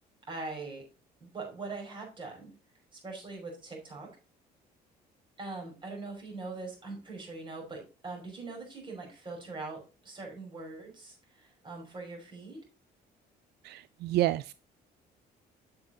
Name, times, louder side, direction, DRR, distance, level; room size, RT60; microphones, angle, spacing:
voice 1, 0.3-0.8 1.2-2.5 2.9-4.1 5.4-12.6, right 3 dB, 30° right, 5.7 m, -42 dB
voice 2, 13.6-14.5, right 15 dB, 75° right, 0.4 m, -29 dB
8.8 x 7.0 x 3.8 m
cardioid pair, 110°, 17 cm